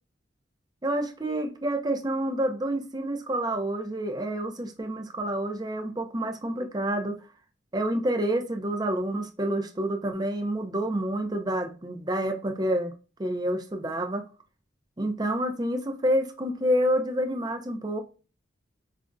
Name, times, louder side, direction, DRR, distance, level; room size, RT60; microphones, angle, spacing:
voice 1, 0.8-7.2 7.7-12.9 13.2-14.2 15.0-18.0, right 1 dB, 20° right, 0.5 m, -28 dB
5.0 x 2.5 x 2.2 m
head